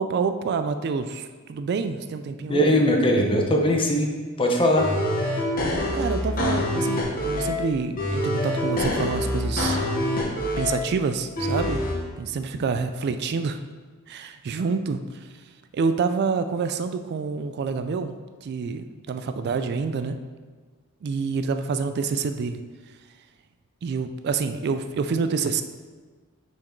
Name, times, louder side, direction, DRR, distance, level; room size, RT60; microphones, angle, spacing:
voice 1, 0.0-2.7 5.6-9.8 10.6-11.8 12.2-13.6 14.1-15.3 15.7-18.2 18.4-20.2 21.0-22.6 23.8-25.6, right 5 dB, 50° right, 9 dB, 0.3 m, -27 dB
voice 2, 2.5-4.1 4.4-4.8, equal, 25° left, 1 dB, 0.8 m, -20 dB
sound 1, 4.8-7.6 8.0-10.8 11.4-11.9, left 1 dB, 45° left, 1.2 m, -25 dB
5.9 x 4.5 x 4.5 m, 1.4 s
head